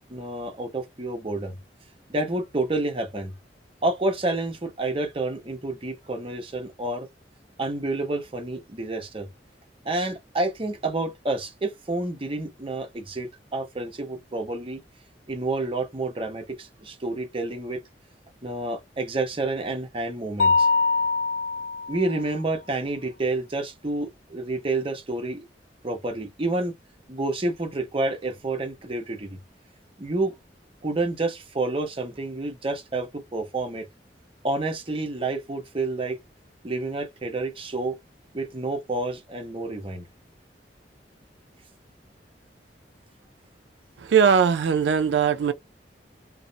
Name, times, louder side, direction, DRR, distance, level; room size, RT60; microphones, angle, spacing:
voice 1, 0.1-1.6 2.1-3.3 3.8-7.1 7.6-9.3 9.8-14.8 15.3-17.8 18.4-20.7 21.9-25.4 25.8-26.7 27.1-29.4 30.0-30.4 30.8-33.9 34.4-36.2 36.6-38.0 38.3-40.1, right 2 dB, 30° right, 0.7 m, -29 dB
Mallet percussion, 20.4-22.2, left 4 dB, 55° left, 0.3 m, -23 dB
voice 2, 44.0-45.5, right 7 dB, 90° right, 0.4 m, -20 dB
2.4 x 2.0 x 2.7 m
head